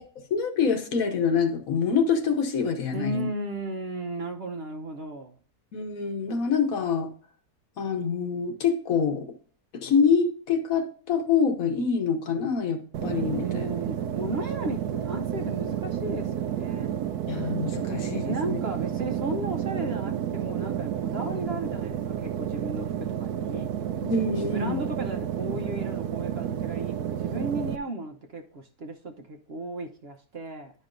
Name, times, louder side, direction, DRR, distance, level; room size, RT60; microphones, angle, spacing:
voice 1, 0.3-3.3 5.7-7.1 7.8-9.3 9.7-13.7 17.3-18.6 24.0-24.8, left 5 dB, 65° left, 1.4 m, -26 dB
voice 2, 2.9-5.3 13.3-16.9 18.2-23.7 24.4-30.7, right 1 dB, 50° right, 0.9 m, -35 dB
sound 1, 12.9-27.8, right 9 dB, 85° right, 1.2 m, -31 dB
11.0 x 5.3 x 2.5 m
omnidirectional pair, 1.6 m